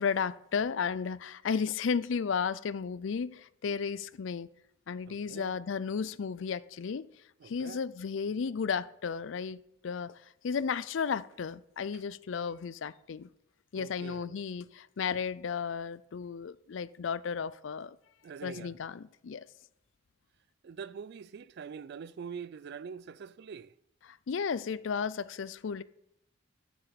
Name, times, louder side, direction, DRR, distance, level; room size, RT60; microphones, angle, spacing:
voice 1, 0.0-4.5 4.9-7.1 7.4-13.3 13.7-18.0 18.4-19.5 24.0-25.8, left 6 dB, 70° left, 0.4 m, -34 dB
voice 2, 5.1-5.6 7.4-7.8 13.7-14.4 18.2-18.7 20.6-23.7, right 6 dB, 55° right, 0.3 m, -44 dB
7.7 x 7.0 x 7.5 m
head